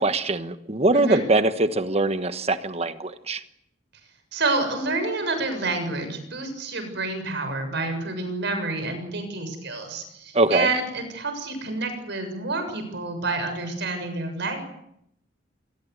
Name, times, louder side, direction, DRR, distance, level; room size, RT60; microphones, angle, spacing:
voice 1, 0.0-3.4 10.3-10.7, right 2 dB, 35° right, 11 dB, 1.4 m, -22 dB
voice 2, 0.9-1.2 4.3-14.6, right 3 dB, 60° right, 8 dB, 7.1 m, -28 dB
26.0 x 20.5 x 8.3 m, 0.77 s
head